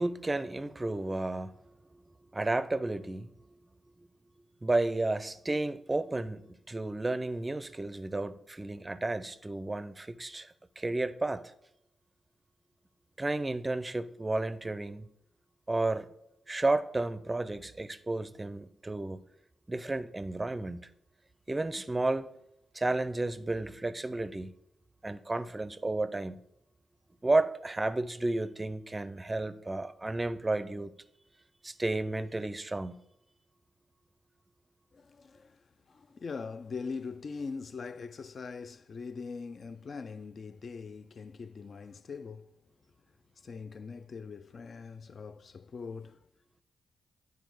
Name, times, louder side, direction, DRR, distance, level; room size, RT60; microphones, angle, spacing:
voice 1, 0.0-1.7 2.3-3.3 4.6-11.5 13.2-15.1 15.7-16.1 16.5-19.2 19.7-20.9 21.5-22.3 22.7-24.5 25.0-26.4 27.2-30.9 31.6-32.9, right 2 dB, 20° right, 0.5 m, -32 dB
voice 2, 34.9-35.6 35.9-42.5 43.4-46.2, left 5 dB, 50° left, 0.3 m, -42 dB
9.1 x 4.7 x 4.7 m
cardioid pair, 65°, 0 cm